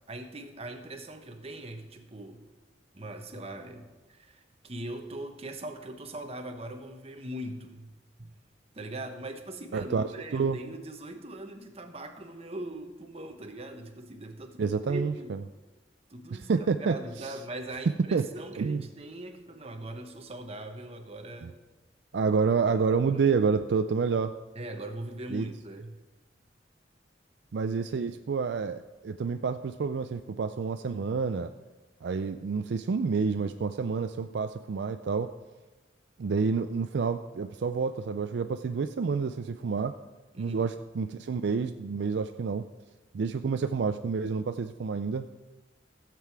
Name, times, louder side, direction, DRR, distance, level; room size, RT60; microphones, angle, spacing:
voice 1, 0.1-2.4 2.9-7.9 8.2-8.3 8.7-15.3 16.1-21.6 22.6-22.8 23.1-23.2 24.5-26.0 40.3-40.7, right 1 dB, 35° right, 5 dB, 1.0 m, -41 dB
voice 2, 9.7-10.6 14.6-15.4 16.3-17.3 18.1-18.2 18.6-18.8 21.4-21.5 22.1-24.3 25.3-25.5 27.5-31.5 32.0-35.3 36.2-40.0 40.4-42.6 43.1-45.2, right 5 dB, 65° right, 9 dB, 0.4 m, -29 dB
15.0 x 7.6 x 4.7 m, 1.2 s
head